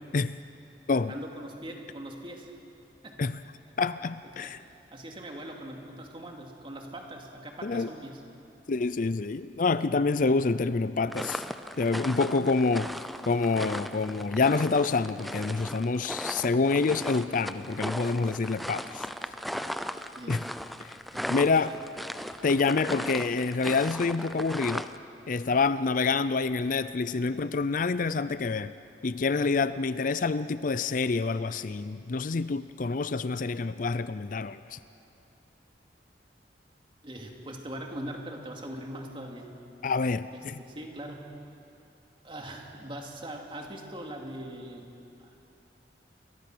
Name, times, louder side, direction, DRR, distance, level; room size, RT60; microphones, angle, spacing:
voice 1, 0.9-2.5 3.0-3.3 4.3-4.5 4.9-8.2 12.4-12.6 20.1-20.5 21.1-21.3 21.7-21.8 37.0-39.5 40.3-41.2 42.2-44.9 45.2-45.4, right 1 dB, 30° right, 1 dB, 2.6 m, -41 dB
voice 2, 3.8-4.6 7.6-7.9 8.7-11.4 11.8-12.9 13.3-19.1 20.3-20.4 20.8-20.9 21.3-21.7 22.4-24.9 25.3-28.7 29.0-34.8 39.8-40.6, left 4 dB, 50° left, 14 dB, 0.5 m, -27 dB
sound 1, 11.1-25.0, equal, ahead, 0.5 m, -37 dB
28.5 x 22.0 x 6.2 m, 2.7 s
head